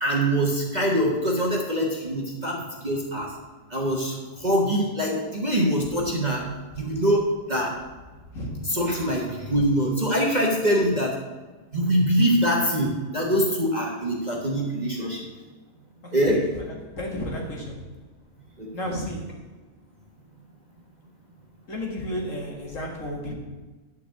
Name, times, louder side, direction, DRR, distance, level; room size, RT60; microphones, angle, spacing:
voice 1, 0.0-3.3 3.7-4.1 4.4-6.4 6.8-7.7 8.6-11.1 11.7-15.2 16.1-16.4 18.6-18.9, equal, 25° right, -2 dB, 1.3 m, -24 dB
voice 2, 16.0-16.4 17.0-17.8 18.7-19.2 21.7-23.3, equal, 50° left, -1 dB, 2.2 m, -32 dB
11.5 x 4.7 x 7.5 m, 1.2 s
omnidirectional pair, 1.8 m